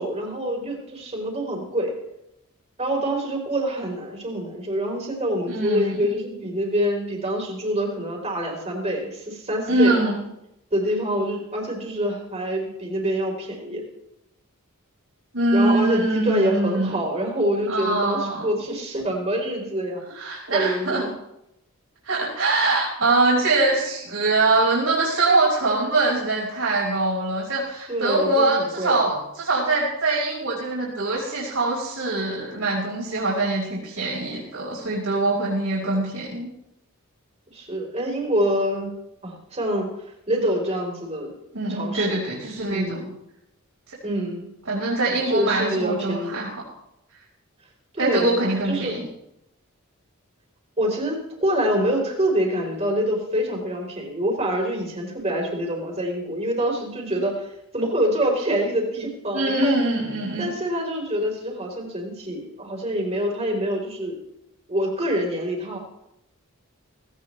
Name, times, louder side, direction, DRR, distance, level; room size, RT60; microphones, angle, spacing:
voice 1, 0.0-1.9 2.8-10.0 10.7-13.8 15.5-20.0 20.5-21.1 27.9-29.0 37.5-38.9 39.2-39.9 40.3-41.3 41.7-42.2 42.7-43.1 44.0-44.5 45.3-46.5 47.9-48.4 48.6-48.9 50.8-59.8 60.4-64.2 64.7-65.8, equal, 30° right, 0 dB, 4.0 m, -26 dB
voice 2, 5.5-6.1 9.7-10.2 15.3-17.0 17.7-18.5 20.1-21.0 22.0-36.5 41.5-43.0 44.7-46.6 48.0-49.1 57.1-57.2 59.3-60.5, right 2 dB, 65° right, -7 dB, 5.2 m, -23 dB
18.0 x 17.5 x 3.3 m, 0.84 s
head